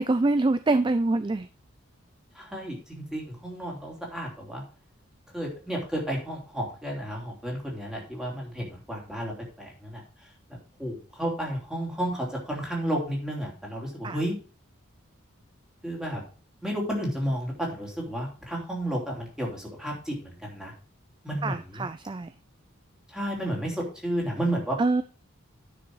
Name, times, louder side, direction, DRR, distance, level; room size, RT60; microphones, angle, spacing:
voice 1, 0.0-1.5 14.0-14.2 21.4-22.3 24.8-25.0, right 2 dB, 20° right, 12 dB, 0.3 m, -25 dB
voice 2, 2.3-4.6 5.3-9.3 9.6-10.0 10.8-14.4 15.8-16.2 16.6-20.7 21.2-21.8 23.1-24.8, right 1 dB, 5° right, -2 dB, 3.1 m, -32 dB
10.0 x 6.2 x 4.7 m, 0.38 s
head